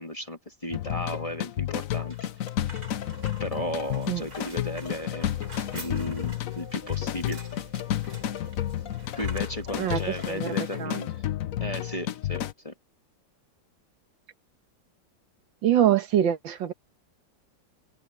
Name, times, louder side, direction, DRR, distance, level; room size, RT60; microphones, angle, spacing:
voice 1, 0.0-2.3 3.4-5.4 5.7-7.4 9.2-11.2 11.6-12.7, left 1 dB, 20° left, 1.5 m, -35 dB
sound 1, 0.7-12.5, left 11 dB, 65° left, 0.9 m, -31 dB
sound 2, 2.0-10.9, right 1 dB, 50° right, 7.8 m, -47 dB
sound 3, 3.0-9.8, equal, 5° right, 8.0 m, -51 dB
voice 2, 9.7-10.5 10.8-11.0 15.6-16.7, right 10 dB, 80° right, 1.9 m, -24 dB
omnidirectional pair, 2.0 m